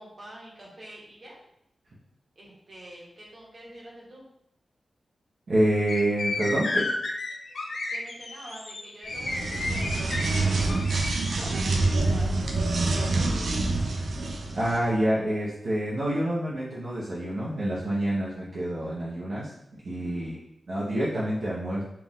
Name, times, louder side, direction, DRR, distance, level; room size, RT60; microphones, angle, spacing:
voice 1, 0.0-1.4 2.4-4.2 7.9-10.5 10.9-13.8 19.9-20.4, right 1 dB, 40° right, -4 dB, 1.2 m, -47 dB
voice 2, 5.5-6.9 14.5-19.5 19.8-20.4 20.7-21.8, right 1 dB, 65° right, -8 dB, 0.9 m, -27 dB
sound 1, 5.9-11.5, left 2 dB, 80° left, 0.7 m, -32 dB
sound 2, 9.1-14.8, right 2 dB, 85° right, 0.5 m, -26 dB
4.6 x 2.4 x 3.6 m, 0.76 s
wide cardioid pair, 170°, 0 cm